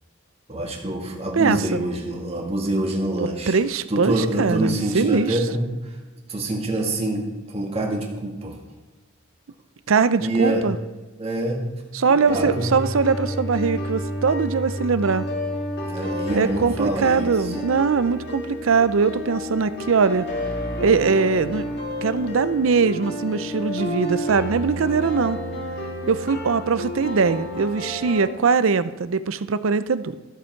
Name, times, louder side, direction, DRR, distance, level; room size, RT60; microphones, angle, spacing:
voice 1, 0.5-3.6 3.9-5.6 6.3-8.6 10.2-10.6 11.2-11.7 12.1-12.8 15.8-17.7, right 1 dB, 30° right, 0 dB, 1.9 m, -26 dB
voice 2, 1.4-1.8 3.2-5.4 9.9-10.8 11.9-15.3 16.3-20.2 20.8-21.6 22.0-25.4 26.1-30.2, right 5 dB, 75° right, 14 dB, 0.5 m, -21 dB
sound 1, 12.3-28.3, equal, 55° left, 1.9 m, -30 dB
13.5 x 7.4 x 4.5 m, 1.2 s
head